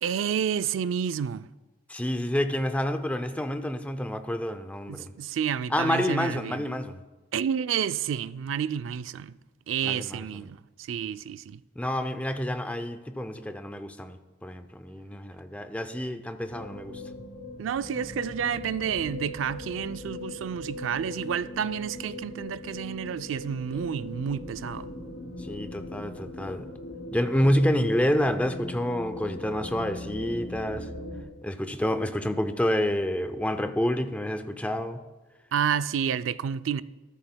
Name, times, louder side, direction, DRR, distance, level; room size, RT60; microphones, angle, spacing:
voice 1, 0.0-1.5 4.9-6.6 7.3-9.4 9.7-11.6 17.6-24.9 35.5-36.8, right 8 dB, 90° right, 0.4 m, -30 dB
voice 2, 1.9-5.1 5.7-7.0 9.8-10.2 11.8-17.0 25.4-26.7 27.1-30.9 31.4-35.0, equal, 5° left, 0.5 m, -28 dB
sound 1, 16.4-31.2, left 1 dB, 65° left, 3.3 m, -40 dB
14.5 x 13.0 x 2.2 m
head